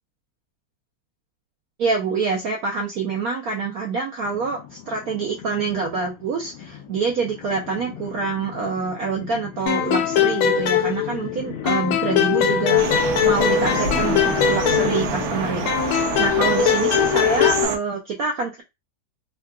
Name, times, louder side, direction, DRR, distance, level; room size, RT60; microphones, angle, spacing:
voice 1, 1.8-12.9 13.2-18.6, right 4 dB, 80° right, 2 dB, 0.8 m, -26 dB
sound 1, 4.2-15.7, left 9 dB, 70° left, 1.1 m, -35 dB
sound 2, 9.7-11.4 11.7-15.3 15.7-17.7, left 9 dB, 90° left, 1.5 m, -21 dB
sound 3, 12.8-17.8, right 6 dB, 65° right, 1.0 m, -27 dB
3.6 x 2.4 x 2.2 m, 0.22 s
omnidirectional pair, 2.2 m